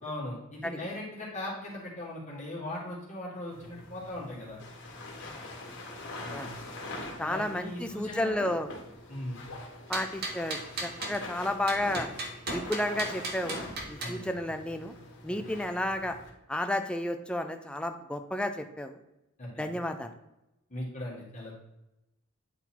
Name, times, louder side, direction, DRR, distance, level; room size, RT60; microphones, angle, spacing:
voice 1, 0.0-4.6 6.2-6.5 7.2-8.5 9.1-9.4 14.0-14.3 15.3-15.4 19.4-19.7 20.7-21.5, left 1 dB, 35° left, -5 dB, 1.8 m, -39 dB
sound 1, 3.5-16.3, left 1 dB, 60° left, 1.7 m, -43 dB
voice 2, 7.2-8.7 9.9-12.1 12.5-14.9 15.2-16.2 16.5-19.0 19.6-20.1, left 1 dB, 5° left, 6 dB, 0.5 m, -32 dB
sound 2, 9.9-11.2 11.7-14.2, right 3 dB, 50° right, 1.1 m, -37 dB
9.1 x 4.0 x 4.4 m, 0.90 s
head